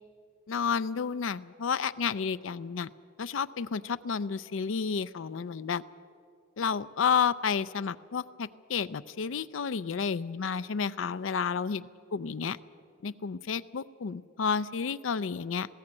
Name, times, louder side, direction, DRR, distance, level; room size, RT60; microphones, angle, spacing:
voice 1, 0.5-2.9 3.2-5.8 6.6-11.8 12.1-12.6 13.0-15.7, left 6 dB, 70° left, 14 dB, 0.5 m, -31 dB
20.5 x 16.0 x 8.8 m, 2.4 s
head